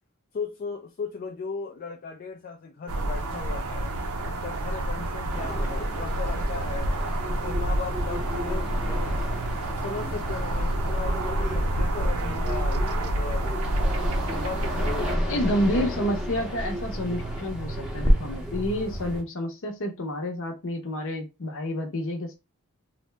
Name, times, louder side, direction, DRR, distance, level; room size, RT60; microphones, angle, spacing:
voice 1, 0.3-3.9 4.2-6.9 7.2-9.2 9.7-13.5 14.3-15.5, left 5 dB, 40° left, 0.3 m, -37 dB
sound 1, 2.9-15.2, right 1 dB, 70° right, 0.5 m, -28 dB
sound 2, 5.3-19.2, equal, 5° right, 0.6 m, -31 dB
voice 2, 15.3-22.3, left 1 dB, 60° left, 0.7 m, -29 dB
2.7 x 2.1 x 3.2 m
head